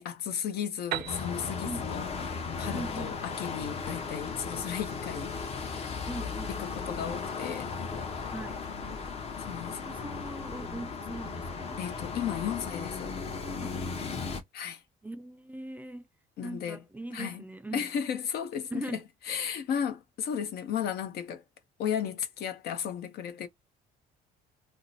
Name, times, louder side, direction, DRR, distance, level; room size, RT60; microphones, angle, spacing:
voice 1, 0.0-5.7 6.6-7.7 9.4-9.8 11.8-13.2 14.5-14.8 16.4-16.8 17.1-17.4 17.7-19.0 19.3-21.4 21.8-23.5, left 8 dB, 70° left, 0.8 m, -34 dB
Piano, 0.9-4.6, right 13 dB, 70° right, 0.5 m, -41 dB
sound 1, 1.1-14.4, left 5 dB, 40° left, 0.8 m, -36 dB
voice 2, 2.7-3.1 6.1-7.0 8.3-8.6 9.6-11.8 13.6-14.2 15.0-16.1 16.4-17.9 18.7-19.0, right 1 dB, 10° right, 0.3 m, -41 dB
2.7 x 2.1 x 4.0 m
cardioid pair, 110°, 17 cm